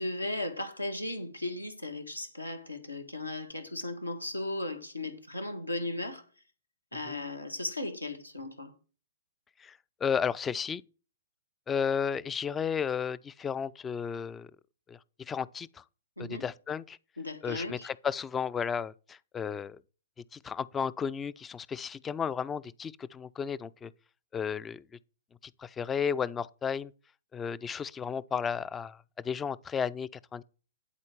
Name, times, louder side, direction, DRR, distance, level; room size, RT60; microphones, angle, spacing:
voice 1, 0.0-6.2 6.9-8.7 16.2-16.5 17.2-17.9, left 2 dB, 85° left, 1.4 m, -36 dB
voice 2, 9.6-10.8 11.7-14.5 14.9-15.8 16.2-17.0 17.4-19.8 20.3-23.9 24.3-24.8 25.4-26.9 27.3-30.4, left 7 dB, 15° left, 0.3 m, -33 dB
11.0 x 4.5 x 6.1 m
figure-of-eight pair, 110°, 0 cm